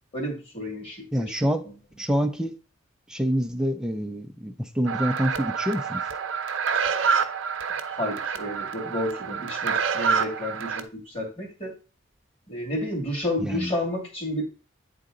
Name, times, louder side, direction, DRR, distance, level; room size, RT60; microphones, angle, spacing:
voice 1, 0.1-1.3 7.8-11.7 12.5-14.4, left 1 dB, 30° left, 0 dB, 2.4 m, -31 dB
voice 2, 1.1-1.6 2.0-2.5 3.1-6.0 13.4-13.7, equal, 5° right, 6 dB, 0.5 m, -26 dB
sound 1, 4.9-10.8, right 6 dB, 70° right, 0.7 m, -27 dB
8.6 x 3.8 x 3.8 m, 0.34 s
head